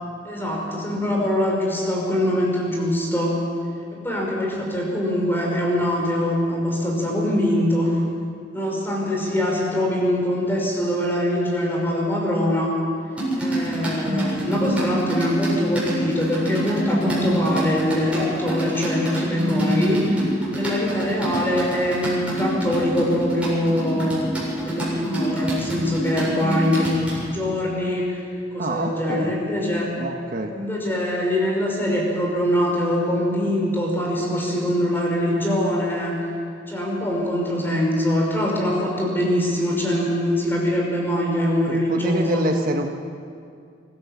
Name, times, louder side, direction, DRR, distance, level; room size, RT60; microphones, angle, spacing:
voice 1, 0.2-3.3 3.9-8.0 8.5-12.7 13.3-20.2 20.5-24.3 24.6-28.2 28.5-29.9 30.5-36.1 36.7-42.4, left 1 dB, 10° left, -2 dB, 5.3 m, -23 dB
sound 1, 13.1-27.2, right 1 dB, 5° right, 7.8 m, -26 dB
voice 2, 28.6-29.4 30.0-30.5 41.7-42.9, right 1 dB, 50° right, 3 dB, 1.2 m, -26 dB
24.5 x 16.0 x 7.3 m, 2.3 s
head